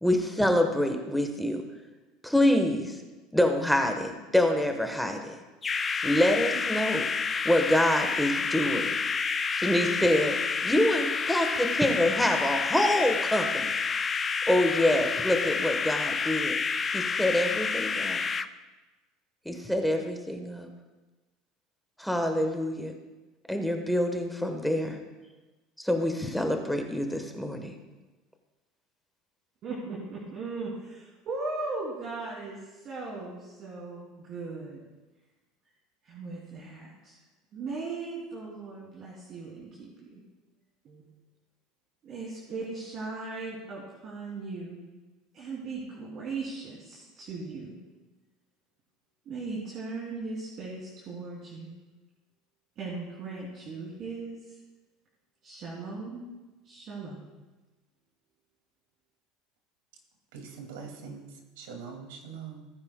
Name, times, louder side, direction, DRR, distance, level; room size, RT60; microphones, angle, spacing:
voice 1, 0.0-1.6 2.2-2.9 3.3-5.4 6.0-7.0 7.4-8.9 9.5-10.4 10.6-13.8 14.5-16.6 16.9-18.2 19.4-20.7 22.0-22.9 23.5-25.0 25.8-27.8, left 1 dB, ahead, 4 dB, 1.2 m, -26 dB
sound 1, 5.6-18.5, left 5 dB, 25° left, 0.4 m, -29 dB
voice 2, 29.6-34.8 36.0-37.2 37.5-40.2 40.8-41.0 42.0-44.8 45.3-47.7 49.2-51.7 52.8-54.4 55.4-56.3 56.6-57.3, right 3 dB, 45° right, -5 dB, 2.9 m, -38 dB
voice 3, 60.3-61.3 61.6-62.7, right 6 dB, 85° right, 2 dB, 2.3 m, -42 dB
18.0 x 9.7 x 2.3 m, 1.2 s
supercardioid pair, 115°, 0 cm